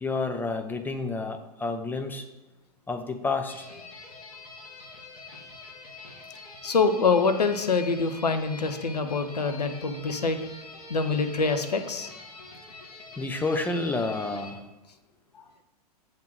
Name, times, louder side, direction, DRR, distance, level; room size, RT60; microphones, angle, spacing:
voice 1, 0.0-2.2 2.9-3.6 13.2-14.6, left 3 dB, 10° left, 6 dB, 0.7 m, -29 dB
sound 1, 3.5-14.5, left 3 dB, 65° left, 1.6 m, -45 dB
voice 2, 6.6-10.4 10.9-12.1, left 4 dB, 90° left, 8 dB, 0.8 m, -25 dB
7.3 x 3.8 x 6.1 m, 1.0 s
hypercardioid pair, 100°, 20 cm